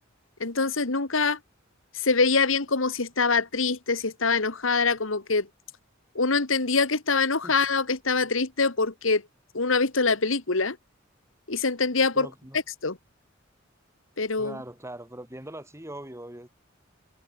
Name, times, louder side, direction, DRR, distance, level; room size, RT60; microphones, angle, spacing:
voice 1, 0.4-1.4 1.9-5.5 6.2-9.2 9.5-10.8 11.5-12.3 12.8-13.0 14.2-14.6, left 4 dB, 70° left, 1.8 m, -24 dB
voice 2, 12.1-12.6 14.4-16.6, right 1 dB, 15° right, 5.5 m, -41 dB
head